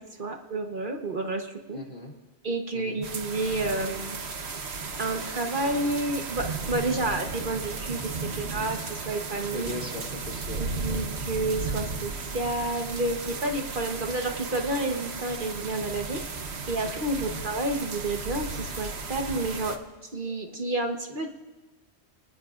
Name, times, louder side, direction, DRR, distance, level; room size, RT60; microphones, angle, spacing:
voice 1, 0.0-1.8 2.4-4.2 5.0-9.7 10.6-16.2 16.7-19.8 20.1-21.4, right 2 dB, 50° right, 3 dB, 1.3 m, -30 dB
voice 2, 1.7-2.1 2.7-3.0 9.5-10.6 10.9-11.0 17.2-17.4, left 2 dB, 50° left, 0 dB, 3.0 m, -38 dB
sound 1, 3.0-19.8, right 4 dB, 70° right, 1.3 m, -35 dB
29.5 x 19.0 x 2.5 m, 1.2 s
omnidirectional pair, 1.1 m